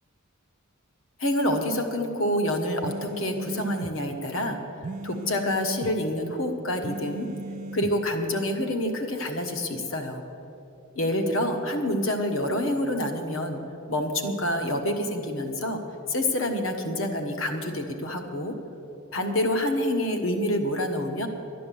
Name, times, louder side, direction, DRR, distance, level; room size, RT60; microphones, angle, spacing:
voice 1, 1.2-4.6 5.0-7.3 7.7-10.2 10.9-13.6 13.9-15.8 16.1-18.5 19.1-21.3, left 1 dB, 70° left, 5 dB, 1.3 m, -27 dB
sound 1, 2.8-3.9 4.8-6.0 6.8-8.0, right 2 dB, 40° right, 0.4 m, -36 dB
12.5 x 10.0 x 7.6 m, 2.9 s
head